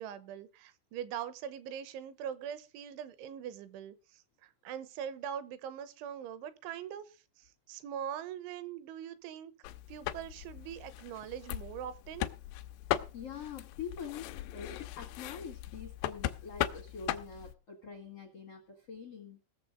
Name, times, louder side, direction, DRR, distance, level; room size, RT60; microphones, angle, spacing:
voice 1, 0.0-9.5 9.9-12.3, right 9 dB, 75° right, 14 dB, 3.2 m, -42 dB
sound 1, 9.6-17.6, left 14 dB, 85° left, 2.4 m, -38 dB
voice 2, 13.1-19.4, left 6 dB, 70° left, 1 dB, 1.4 m, -45 dB
18.5 x 7.1 x 5.1 m, 0.34 s
omnidirectional pair, 5.7 m